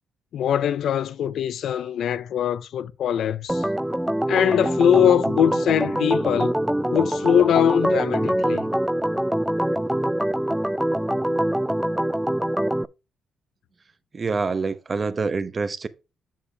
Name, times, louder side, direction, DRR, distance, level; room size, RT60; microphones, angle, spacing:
voice 1, 0.3-3.6 4.3-6.5 6.9-8.6, left 9 dB, 70° left, 0.4 m, -21 dB
Organ, 3.5-12.8, right 1 dB, 5° right, 0.3 m, -24 dB
voice 2, 14.1-15.9, right 4 dB, 35° right, 0.7 m, -26 dB
7.6 x 6.5 x 3.3 m
cardioid pair, 90°, 0 cm